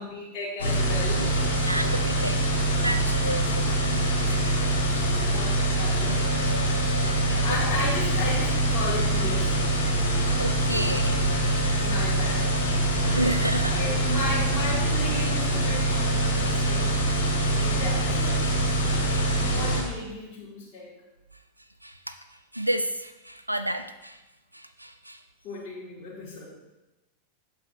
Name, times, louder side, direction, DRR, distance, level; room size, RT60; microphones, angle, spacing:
voice 1, 0.0-1.3 5.3-6.5 7.3-9.8 11.8-12.6 13.6-17.3 17.6-18.4 19.3-20.9 25.4-26.5, left 2 dB, 40° left, -9 dB, 2.2 m, -34 dB
sound 1, 0.6-19.8, right 1 dB, 65° left, 2.0 m, -24 dB
voice 2, 1.6-4.8 6.0-7.6 10.4-11.2 13.0-13.8 21.8-22.2 22.5-24.2 24.5-25.2, right 1 dB, 85° right, 10 dB, 0.3 m, -32 dB
8.3 x 7.5 x 2.6 m, 1.1 s
figure-of-eight pair, 90°, 0 cm